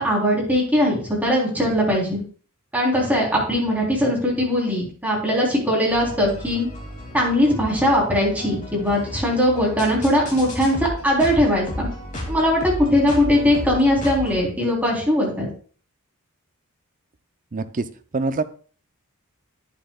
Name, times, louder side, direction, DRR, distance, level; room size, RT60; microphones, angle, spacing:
voice 1, 0.0-2.2 2.7-6.7 7.1-11.9 12.3-15.5, left 1 dB, 5° right, -4 dB, 3.5 m, -20 dB
sound 1, 5.9-14.4, equal, 35° left, 2.6 m, -34 dB
voice 2, 17.5-17.8 18.1-18.4, right 3 dB, 40° right, 11 dB, 0.6 m, -24 dB
11.5 x 9.0 x 2.3 m, 0.42 s
head